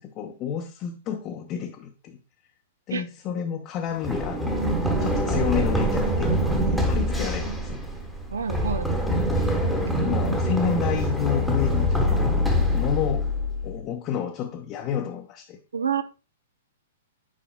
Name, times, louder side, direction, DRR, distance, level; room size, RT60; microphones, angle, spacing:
voice 1, 0.0-2.2 2.9-4.6 5.0-7.8 9.7-12.3 12.7-13.3 13.6-15.6, left 8 dB, 30° left, 0.8 m, -30 dB
Run, 4.0-13.8, equal, 5° right, 1.1 m, -24 dB
voice 2, 8.3-8.9 15.7-16.0, right 7 dB, 70° right, 0.6 m, -27 dB
9.9 x 4.8 x 2.3 m
figure-of-eight pair, 105°, 0 cm